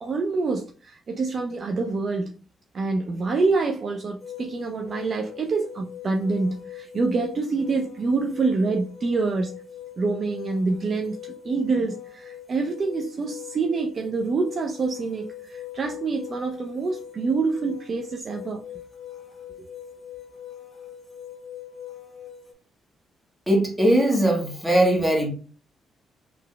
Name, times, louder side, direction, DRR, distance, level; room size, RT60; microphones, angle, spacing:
voice 1, 0.0-2.3 2.7-9.6 10.0-11.2 11.4-18.6, right 3 dB, 45° right, 0.5 m, -26 dB
sound 1, 4.2-22.5, left 10 dB, 30° left, 1.7 m, -42 dB
voice 2, 23.5-25.3, right 1 dB, 10° right, 1.7 m, -20 dB
3.9 x 3.3 x 3.3 m
cardioid pair, 90°, 0 cm